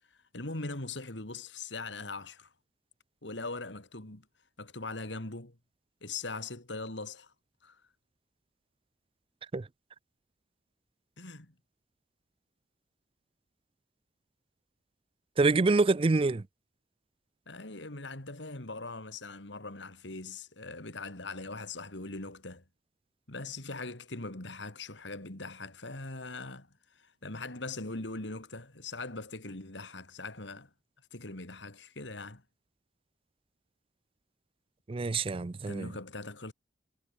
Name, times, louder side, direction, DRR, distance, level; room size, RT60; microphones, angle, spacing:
voice 1, 0.1-2.5 3.2-4.2 4.6-5.5 6.0-7.3 7.6-7.8 11.2-11.5 17.5-22.6 23.3-30.7 31.1-32.4 35.7-36.5, left 3 dB, 75° left, 3.1 m, -41 dB
voice 2, 15.4-16.4 34.9-35.9, right 3 dB, 30° right, 0.4 m, -26 dB
head